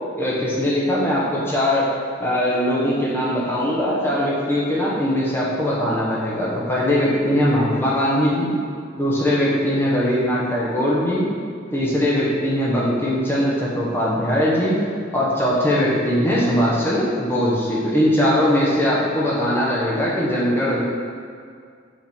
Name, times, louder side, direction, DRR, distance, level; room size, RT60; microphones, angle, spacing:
voice 1, 0.2-1.9 2.2-8.5 9.0-11.3 11.7-14.8 15.1-20.8, equal, 10° left, -6 dB, 1.1 m, -20 dB
5.9 x 5.2 x 3.6 m, 2.2 s
head